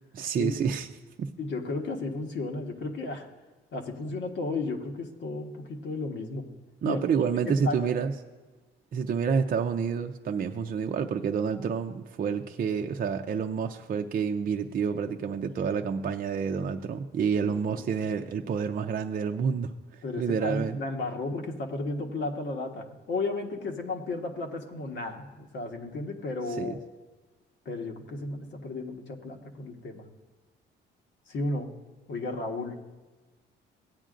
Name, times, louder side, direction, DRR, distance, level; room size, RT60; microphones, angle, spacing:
voice 1, 0.1-0.9 1.2-1.3 6.8-8.1 8.9-20.8 26.6-26.7, right 6 dB, 45° right, 5 dB, 0.5 m, -29 dB
voice 2, 1.4-3.3 3.7-6.5 6.8-7.9 17.4-18.0 20.0-26.8 27.6-30.1 31.3-31.7 32.1-32.7, left 3 dB, 70° left, 2 dB, 1.4 m, -34 dB
16.5 x 8.9 x 2.5 m, 1.2 s
cardioid pair, 90°, 20 cm